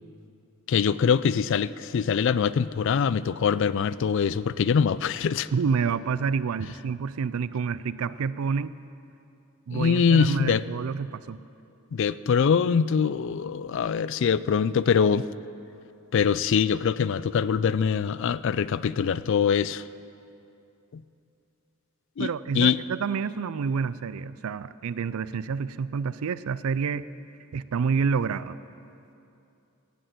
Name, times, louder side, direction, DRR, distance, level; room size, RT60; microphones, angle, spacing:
voice 1, 0.7-5.5 9.7-10.6 11.9-15.2 16.1-19.8 22.2-22.3 22.6-22.8, left 6 dB, 55° left, 17 dB, 0.3 m, -23 dB
voice 2, 5.5-8.8 9.7-11.4 22.2-27.1 27.5-28.6, right 5 dB, 70° right, 16 dB, 0.4 m, -28 dB
15.0 x 6.6 x 9.2 m, 2.7 s
head